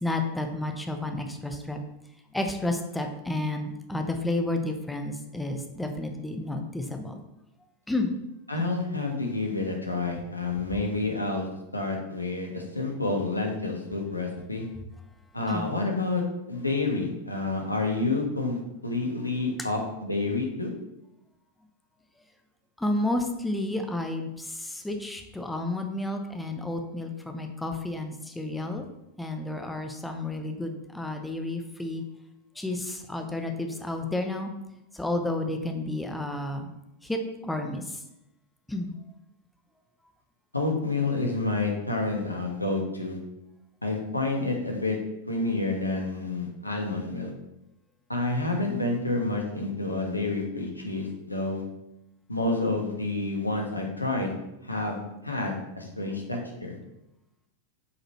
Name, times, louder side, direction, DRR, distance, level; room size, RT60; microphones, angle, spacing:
voice 1, 0.0-1.8 2.3-7.1 7.9-8.1 8.6-8.7 15.5-15.7 22.8-28.9 29.2-32.0 32.6-34.5 34.9-36.7 37.0-38.0 38.7-38.9, left 2 dB, 5° left, 4 dB, 0.8 m, -31 dB
voice 2, 8.5-11.5 11.7-14.6 15.3-20.7 40.5-43.2 43.8-45.0 45.3-47.3 48.1-51.6 52.3-54.3 54.6-56.8, left 2 dB, 85° left, 1 dB, 1.3 m, -29 dB
8.4 x 5.2 x 3.1 m, 0.88 s
figure-of-eight pair, 90°, 0 cm